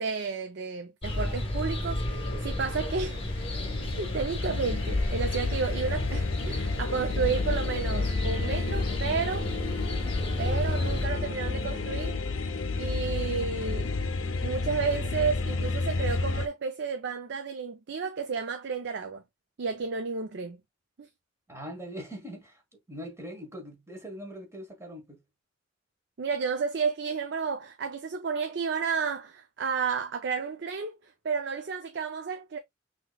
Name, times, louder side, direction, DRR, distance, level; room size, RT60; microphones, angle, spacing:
voice 1, 0.0-3.2 4.0-9.5 10.4-12.2 12.8-13.9 14.4-19.2 19.6-20.6 21.0-21.1 26.2-32.6, right 5 dB, 60° right, 0.5 m, -32 dB
sound 1, 1.0-11.1, left 1 dB, 30° left, 1.2 m, -32 dB
sound 2, 2.6-16.5, left 3 dB, 80° left, 0.6 m, -31 dB
sound 3, 3.0-16.2, equal, 35° right, 1.7 m, -47 dB
voice 2, 21.5-25.2, equal, 15° right, 1.4 m, -42 dB
5.8 x 2.9 x 2.3 m
head